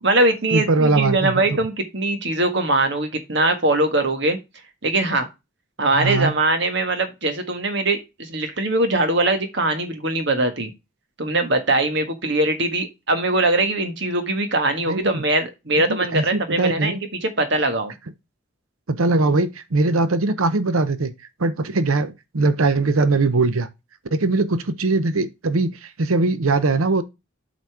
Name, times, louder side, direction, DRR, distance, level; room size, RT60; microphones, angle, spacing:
voice 1, 0.0-4.4 4.8-5.3 5.8-10.7 11.2-17.9, right 2 dB, 55° right, 1.5 m, -21 dB
voice 2, 0.5-1.4 6.0-6.3 14.9-15.2 15.9-17.0 18.9-21.1 21.4-23.7 24.1-27.0, right 3 dB, 80° right, 0.8 m, -21 dB
7.9 x 4.1 x 4.8 m
head